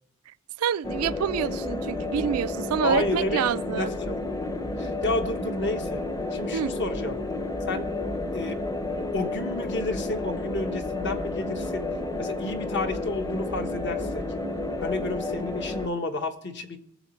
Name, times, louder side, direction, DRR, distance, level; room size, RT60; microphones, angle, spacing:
voice 1, 0.6-3.9 6.5-6.8, right 8 dB, 90° right, 0.4 m, -27 dB
sound 1, 0.8-15.9, left 2 dB, 15° left, 0.7 m, -31 dB
voice 2, 2.8-4.2 4.8-6.0 6.3-7.2 7.7-7.9 8.3-8.6 9.0-11.9 12.2-14.3 14.8-16.8, left 2 dB, 55° left, 1.2 m, -31 dB
18.5 x 7.1 x 4.4 m
head